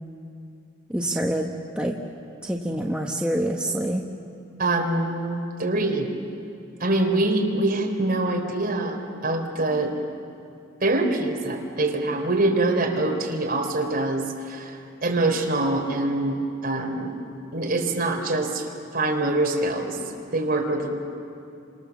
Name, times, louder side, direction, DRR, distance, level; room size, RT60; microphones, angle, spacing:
voice 1, 0.9-1.9 2.4-4.0, right 1 dB, 5° right, -1 dB, 1.2 m, -26 dB
voice 2, 4.6-6.1 6.8-9.9 10.8-17.1 17.5-18.7 18.9-20.0 20.3-21.0, right 2 dB, 45° right, 1 dB, 3.9 m, -24 dB
30.0 x 26.5 x 7.3 m, 2.6 s
head